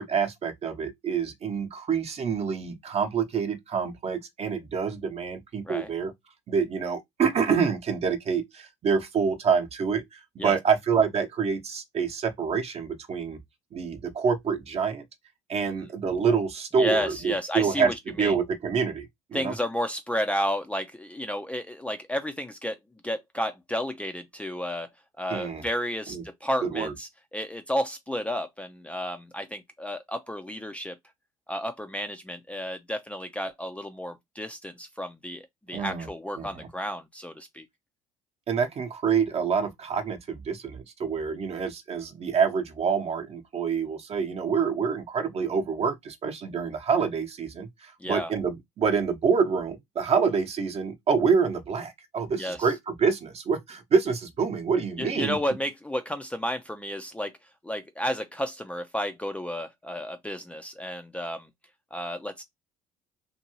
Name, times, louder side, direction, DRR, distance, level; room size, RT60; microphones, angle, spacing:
voice 1, 0.0-6.1 6.5-13.4 13.7-15.0 15.5-19.5 25.3-25.6 26.1-26.2 26.6-26.9 35.7-36.1 36.4-36.7 38.5-55.4, right 6 dB, 45° right, 0.9 m, -27 dB
voice 2, 16.8-18.3 19.3-22.8 23.0-24.9 25.2-30.9 31.5-37.6 48.0-48.3 52.4-52.6 55.0-57.3 57.6-61.5 61.9-62.4, equal, 10° left, 0.5 m, -32 dB
2.6 x 2.6 x 3.0 m
hypercardioid pair, 70°, 15 cm